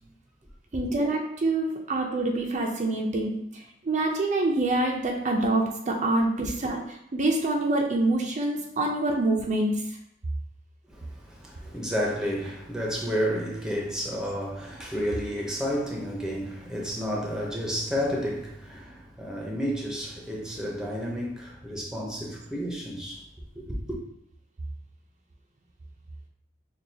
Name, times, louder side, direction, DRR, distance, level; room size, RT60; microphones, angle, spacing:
voice 1, 0.7-10.0, right 2 dB, 40° right, 0.5 m, -26 dB
voice 2, 10.9-23.2 23.6-24.0, equal, 5° right, 0.7 m, -31 dB
6.2 x 2.3 x 2.7 m
head